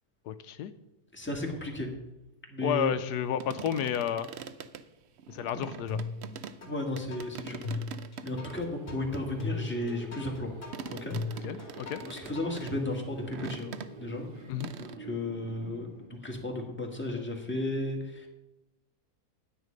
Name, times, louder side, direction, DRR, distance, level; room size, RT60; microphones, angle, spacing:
voice 1, 0.3-0.7 2.6-4.3 5.3-6.0 11.4-12.0 14.5-14.7, left 9 dB, 85° left, 12 dB, 1.2 m, -31 dB
voice 2, 1.1-1.9 2.5-2.9 6.2-6.3 6.6-7.9 8.2-10.5 10.9-11.5 12.0-14.4 14.8-18.3, left 1 dB, 5° left, 1 dB, 1.7 m, -34 dB
sound 1, 3.4-6.6 7.0-8.7 9.1-14.3 14.6-15.0, right 7 dB, 60° right, 0.7 m, -43 dB
sound 2, 5.9-6.7 7.1-12.7, left 4 dB, 35° left, 2.0 m, -37 dB
sound 3, 8.3-16.1, right 1 dB, 30° right, 2.2 m, -47 dB
9.8 x 9.6 x 5.2 m, 0.99 s
omnidirectional pair, 1.7 m